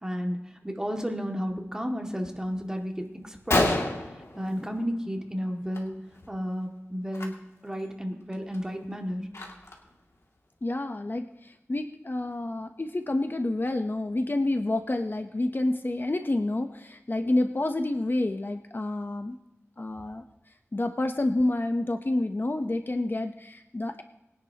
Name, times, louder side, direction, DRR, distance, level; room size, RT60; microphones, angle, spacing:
voice 1, 0.0-3.8 4.4-5.9 6.3-7.3 7.6-9.2, equal, 15° right, 2 dB, 2.1 m, -32 dB
Gunshot gunfire, 2.8-2.9 3.2-3.3 3.5-5.1 5.4-5.8 6.0-6.3 7.1-7.3 7.8-7.9 8.3-9.9, left 1 dB, 65° left, 2.4 m, -29 dB
voice 2, 10.6-19.4 19.8-20.2 20.7-24.0, left 2 dB, 45° left, 7 dB, 0.8 m, -28 dB
22.0 x 10.5 x 2.9 m, 0.95 s
wide cardioid pair, 55°, 5 cm